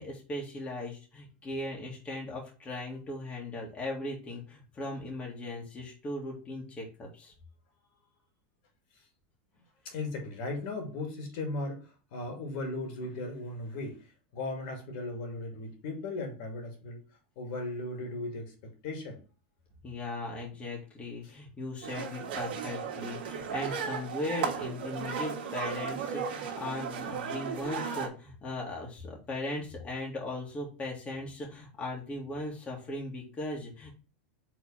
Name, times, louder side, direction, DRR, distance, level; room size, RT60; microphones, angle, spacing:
voice 1, 0.0-7.3 19.8-33.9, left 2 dB, 20° left, -2 dB, 2.0 m, -38 dB
voice 2, 9.8-14.0 14.3-17.0 17.4-19.2, left 2 dB, 60° left, 3 dB, 2.4 m, -37 dB
sound 1, 21.8-28.1, right 7 dB, 75° right, 1.6 m, -35 dB
4.7 x 3.8 x 5.7 m, 0.34 s
supercardioid pair, 140°, 5 cm